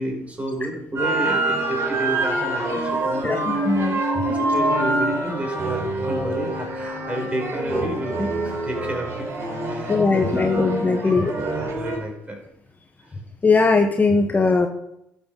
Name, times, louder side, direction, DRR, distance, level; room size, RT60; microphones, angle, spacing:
voice 1, 0.0-3.5 3.9-4.0 4.3-9.3 9.6-10.7 11.0-11.1 11.4-12.4 13.0-13.1, right 1 dB, 20° right, 3 dB, 4.5 m, -31 dB
sound 1, 1.0-12.0, right 2 dB, 45° right, 4.4 m, -25 dB
voice 2, 3.2-4.0 4.3-4.4 9.9-11.3 13.4-14.7, left 4 dB, 25° left, 5 dB, 1.2 m, -19 dB
11.5 x 7.6 x 5.5 m, 0.79 s
hypercardioid pair, 60°, 7 cm